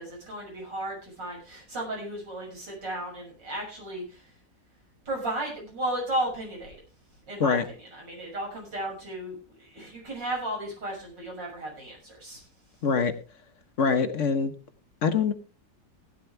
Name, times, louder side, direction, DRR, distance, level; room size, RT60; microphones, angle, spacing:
voice 1, 0.0-4.3 5.1-6.7 7.3-12.4, right 1 dB, 80° right, -1 dB, 7.2 m, -34 dB
voice 2, 12.8-13.1 13.8-14.5 15.0-15.3, left 5 dB, 50° left, 10 dB, 1.3 m, -24 dB
16.0 x 11.5 x 3.4 m, 0.32 s
omnidirectional pair, 1.9 m